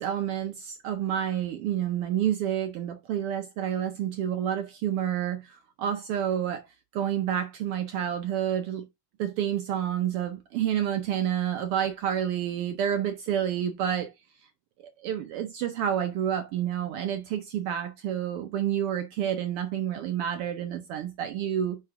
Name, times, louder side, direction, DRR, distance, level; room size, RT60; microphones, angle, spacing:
voice 1, 0.0-6.6 6.9-8.8 9.2-14.1 15.0-21.8, right 10 dB, 85° right, 1.2 m, -29 dB
9.5 x 3.8 x 3.5 m
omnidirectional pair, 3.3 m